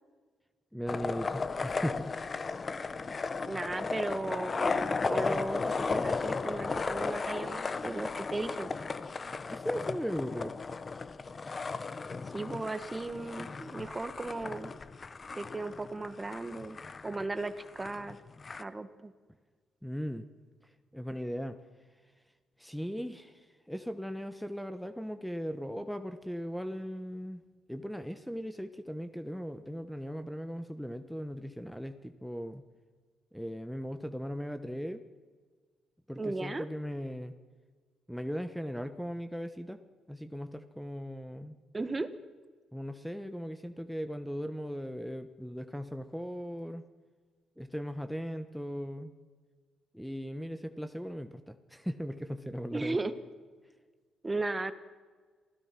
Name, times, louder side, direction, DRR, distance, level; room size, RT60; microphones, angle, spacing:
voice 1, 0.7-2.2 9.5-10.5 19.8-20.2 20.9-21.6 22.6-27.4 27.7-32.6 33.3-35.0 36.1-37.4 38.1-39.8 40.1-41.6 42.7-46.8 47.6-49.1 49.9-53.0, equal, ahead, 9 dB, 1.2 m, -38 dB
sound 1, 0.9-18.6, left 4 dB, 35° left, 1.0 m, -35 dB
voice 2, 3.5-8.8 12.3-14.7 15.3-16.8 17.0-18.2 18.6-19.1 36.2-36.6 41.7-42.1 52.7-53.1 54.2-54.7, right 2 dB, 20° right, 11 dB, 1.5 m, -36 dB
27.5 x 16.5 x 6.1 m, 1.5 s
cardioid pair, 90°, 0 cm